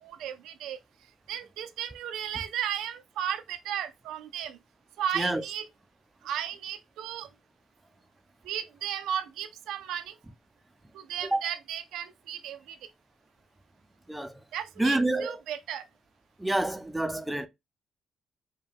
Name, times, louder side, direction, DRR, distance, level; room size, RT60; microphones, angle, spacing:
voice 1, 0.0-0.8 1.3-4.6 5.0-5.7 6.2-7.3 8.4-10.2 10.9-12.8 14.5-15.8, right 9 dB, 85° right, 0.5 m, -34 dB
voice 2, 14.8-15.4 16.4-17.5, right 1 dB, 5° right, 0.5 m, -27 dB
4.7 x 2.3 x 3.4 m
cardioid pair, 90°, 0 cm